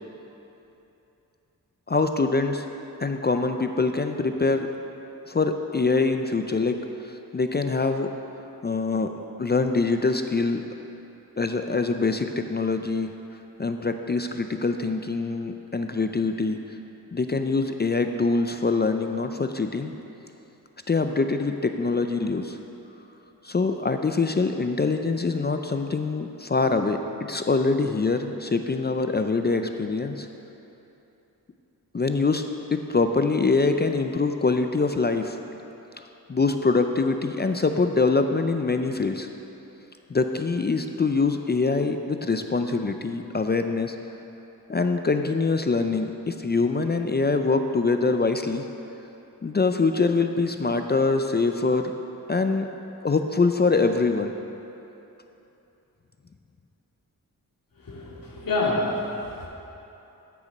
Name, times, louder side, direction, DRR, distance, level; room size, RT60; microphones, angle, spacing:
voice 1, 1.9-2.6 3.0-4.7 5.3-6.8 7.0-8.1 8.6-9.1 9.4-10.6 11.4-13.1 13.6-16.6 17.1-19.9 20.9-22.6 23.4-27.0 27.3-30.3 31.9-32.4 32.7-35.4 36.3-39.3 40.1-43.9 44.7-48.6 49.4-51.8 52.3-52.7 53.0-54.3, left 3 dB, 30° left, 6 dB, 0.5 m, -24 dB
voice 2, 57.8-59.5, left 2 dB, 65° left, -5 dB, 2.6 m, -27 dB
13.5 x 6.9 x 5.3 m, 2.9 s
wide cardioid pair, 95°, 36 cm